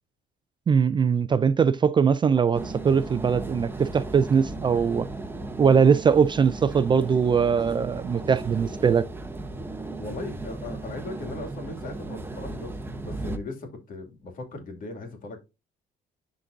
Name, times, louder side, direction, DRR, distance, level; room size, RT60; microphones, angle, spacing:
voice 1, 0.7-5.1 5.6-9.1, right 6 dB, 30° right, 0.4 m, -21 dB
sound 1, 2.5-13.4, right 2 dB, 15° right, 0.9 m, -36 dB
voice 2, 10.0-12.7 13.0-15.4, left 2 dB, 55° left, 2.4 m, -38 dB
11.0 x 3.9 x 2.6 m
cardioid pair, 110°, 17 cm